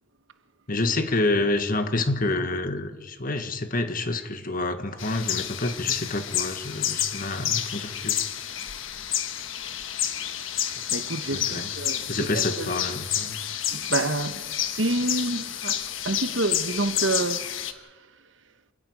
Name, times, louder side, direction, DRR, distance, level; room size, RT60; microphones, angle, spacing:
voice 1, 0.7-8.2 11.3-11.7 12.1-13.4, left 2 dB, 45° left, 1.7 m, -28 dB
sound 1, 5.0-17.7, left 10 dB, 80° left, 1.4 m, -30 dB
voice 2, 10.9-12.7 13.7-17.4 17.7-17.8, right 2 dB, 70° right, 1.3 m, -28 dB
28.5 x 10.5 x 9.6 m
head